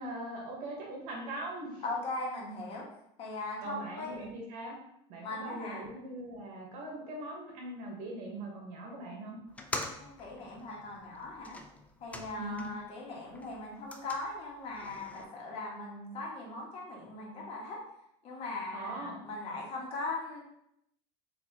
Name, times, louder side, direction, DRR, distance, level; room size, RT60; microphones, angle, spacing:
voice 1, 0.0-1.8 3.6-4.8 5.1-9.4 12.4-12.6 18.7-19.2, right 1 dB, 60° right, -1 dB, 1.0 m, -41 dB
voice 2, 1.8-2.9 3.2-4.2 5.2-5.8 9.9-11.6 12.0-17.8 18.2-20.4, left 2 dB, 40° left, -2 dB, 1.2 m, -39 dB
sound 1, 9.5-12.9 13.2-15.2, left 2 dB, 10° left, 0.3 m, -44 dB
4.1 x 2.6 x 2.8 m, 0.78 s
supercardioid pair, 120°, 15 cm